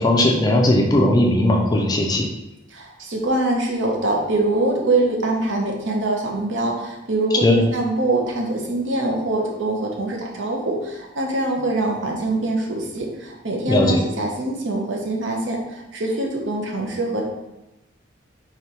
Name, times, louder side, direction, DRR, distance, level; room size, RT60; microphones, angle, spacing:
voice 1, 0.0-2.3 7.4-7.6 13.7-14.0, left 1 dB, 20° left, 0 dB, 0.4 m, -17 dB
voice 2, 2.7-17.2, right 2 dB, 75° right, 0 dB, 0.7 m, -24 dB
3.6 x 3.3 x 2.9 m, 0.98 s
head